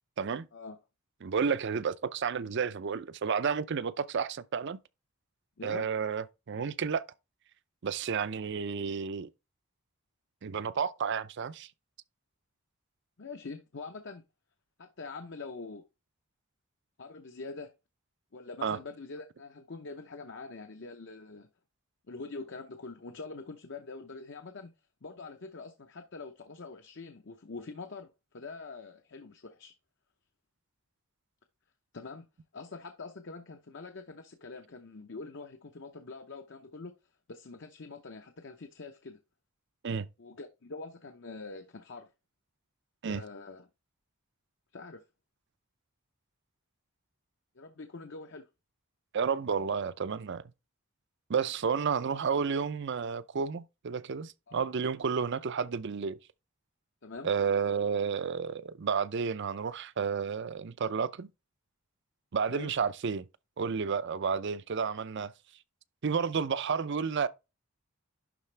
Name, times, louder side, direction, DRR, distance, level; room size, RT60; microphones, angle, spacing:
voice 1, 1.2-4.8 5.6-7.0 7.8-9.3 10.4-11.7 18.6-18.8 39.8-40.1 43.0-43.2 49.1-50.4 51.3-56.2 57.2-61.3 62.3-63.2 63.6-65.3 66.0-67.3, right 6 dB, 55° right, 0.5 m, -31 dB
voice 2, 5.6-5.9 13.2-14.2 14.8-15.8 17.0-17.7 18.3-21.5 22.1-24.7 25.0-29.7 31.9-32.3 32.5-36.9 37.3-39.2 40.2-42.1 43.1-43.7 44.7-45.0 47.5-48.5 54.5-54.7 57.0-57.3 62.5-62.7, left 3 dB, 55° left, 0.8 m, -44 dB
11.0 x 4.2 x 3.3 m
head